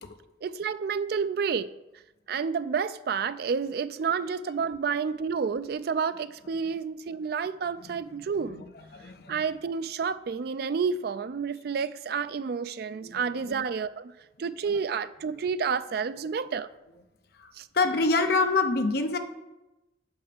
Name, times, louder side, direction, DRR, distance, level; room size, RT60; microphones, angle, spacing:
voice 1, 0.4-1.7 2.3-8.6 9.3-14.1 14.4-16.7 17.5-17.7, right 6 dB, 55° right, 0.3 m, -30 dB
voice 2, 9.0-9.4 13.0-13.6 14.7-14.8 17.4-17.5 17.7-19.2, left 3 dB, 55° left, 0.6 m, -26 dB
5.6 x 5.5 x 6.5 m
head